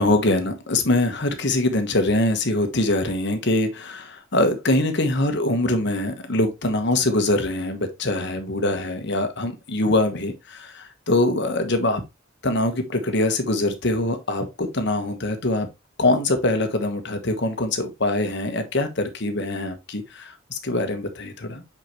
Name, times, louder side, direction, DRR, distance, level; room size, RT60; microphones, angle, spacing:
voice 1, 0.0-12.0 12.4-15.7 16.0-21.6, left 2 dB, 60° left, 1.3 m, -23 dB
6.0 x 5.6 x 3.1 m
head